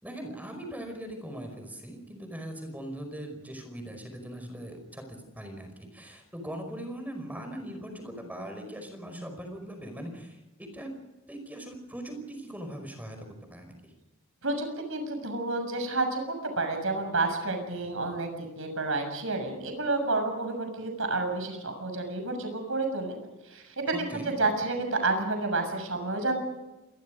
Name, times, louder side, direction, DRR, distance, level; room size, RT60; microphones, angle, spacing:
voice 1, 0.0-10.9 11.3-13.9 23.9-24.3, right 1 dB, 10° right, 5 dB, 5.1 m, -40 dB
voice 2, 14.4-23.2 23.4-24.0 24.2-26.4, right 3 dB, 70° right, 5 dB, 6.8 m, -30 dB
27.5 x 21.5 x 5.2 m, 1.1 s
head